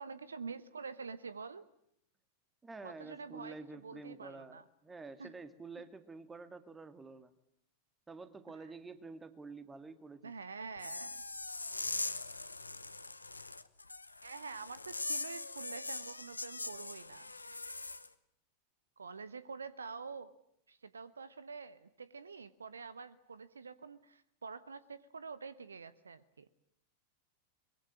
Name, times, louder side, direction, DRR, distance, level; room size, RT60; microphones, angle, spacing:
voice 1, 0.0-1.6 2.8-4.6 5.2-5.3 10.2-11.2 14.2-17.3 19.0-20.3 20.7-26.5, right 5 dB, 75° right, 16 dB, 1.0 m, -47 dB
voice 2, 2.6-7.3 8.1-10.3, right 3 dB, 15° right, 11 dB, 2.0 m, -49 dB
sound 1, 10.8-18.1, left 3 dB, 80° left, 1.0 m, -41 dB
23.5 x 22.5 x 9.9 m, 0.71 s
figure-of-eight pair, 90°, 0 cm